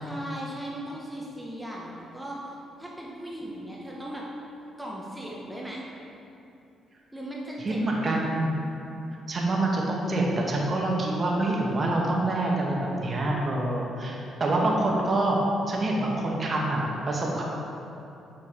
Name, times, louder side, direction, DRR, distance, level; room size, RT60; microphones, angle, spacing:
voice 1, 0.0-4.3 4.8-5.8 7.1-7.8, right 1 dB, 10° right, -4 dB, 0.9 m, -38 dB
voice 2, 7.6-8.5 9.3-15.4 15.7-17.4, right 2 dB, 35° right, -2 dB, 1.2 m, -26 dB
6.9 x 4.6 x 4.3 m, 2.8 s
cardioid pair, 90°, 0 cm